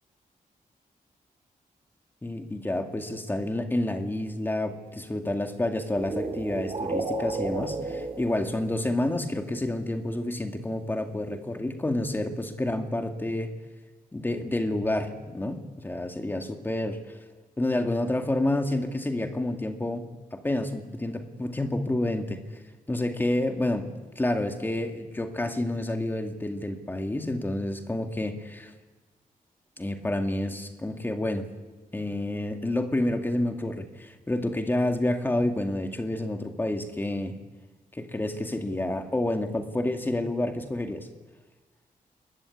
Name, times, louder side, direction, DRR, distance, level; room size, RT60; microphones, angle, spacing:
voice 1, 2.2-13.5 14.1-17.2 17.6-22.6 22.9-28.7 29.8-31.4 31.9-37.4 37.9-41.1, left 1 dB, 15° left, 5 dB, 2.2 m, -29 dB
sound 1, 5.9-8.9, right 3 dB, 40° right, 3.2 m, -32 dB
26.0 x 22.0 x 9.7 m, 1.3 s
wide cardioid pair, 165°, 15 cm